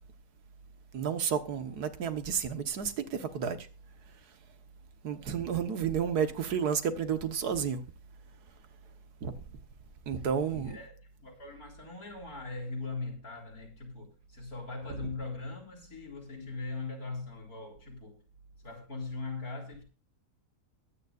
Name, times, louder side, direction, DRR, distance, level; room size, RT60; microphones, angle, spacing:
voice 1, 0.9-3.7 5.0-7.8 9.2-9.3 10.1-10.8 15.0-15.1, right 7 dB, 75° right, 1.9 m, -31 dB
voice 2, 10.5-10.9 11.2-18.2 18.6-19.8, left 3 dB, 65° left, 3.6 m, -40 dB
22.0 x 9.5 x 2.5 m
omnidirectional pair, 1.7 m